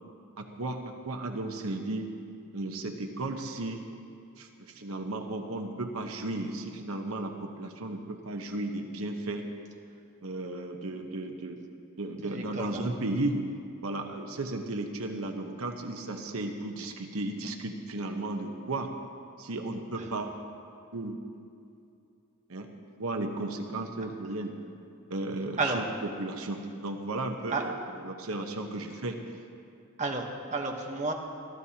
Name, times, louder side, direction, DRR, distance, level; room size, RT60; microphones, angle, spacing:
voice 1, 0.4-0.8 1.0-2.1 2.5-3.8 4.4-9.5 10.2-11.6 12.0-13.4 13.8-18.9 19.4-20.3 20.9-21.4 22.5-22.7 23.0-24.6 25.1-25.8 26.2-27.8 28.0-29.2, right 2 dB, 85° right, 4 dB, 1.0 m, -34 dB
voice 2, 12.2-12.8 20.0-20.1 25.6-25.8 27.5-27.6 30.0-31.1, right 3 dB, 35° right, 1 dB, 1.2 m, -31 dB
24.0 x 14.0 x 2.9 m, 2.5 s
head